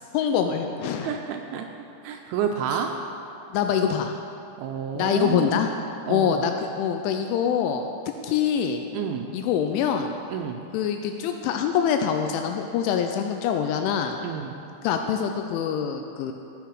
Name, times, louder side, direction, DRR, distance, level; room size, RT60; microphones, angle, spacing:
voice 1, 0.1-1.2 2.7-2.8 3.5-4.1 4.9-5.7 6.1-7.8 8.2-8.8 9.3-10.1 10.7-14.2 14.8-16.3, left 8 dB, 85° left, 5 dB, 2.7 m, -24 dB
voice 2, 1.0-1.7 2.0-2.9 4.6-5.7 6.1-6.4 8.9-9.3 10.3-10.6 14.2-14.5, right 8 dB, 85° right, 4 dB, 2.8 m, -29 dB
14.5 x 6.7 x 4.7 m, 2.7 s
omnidirectional pair, 5.9 m